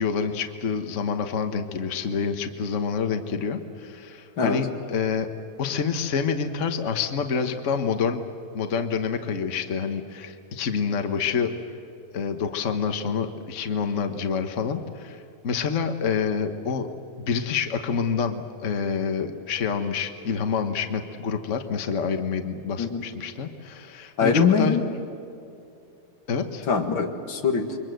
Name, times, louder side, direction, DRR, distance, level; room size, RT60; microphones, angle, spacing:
voice 1, 0.0-5.3 5.6-8.2 8.5-11.5 12.1-16.9 17.2-24.8 26.3-26.7, left 6 dB, 75° left, 7 dB, 0.6 m, -27 dB
voice 2, 24.2-24.8 26.7-27.8, left 5 dB, 45° left, 4 dB, 2.3 m, -22 dB
28.5 x 23.5 x 7.8 m, 2.7 s
omnidirectional pair, 3.4 m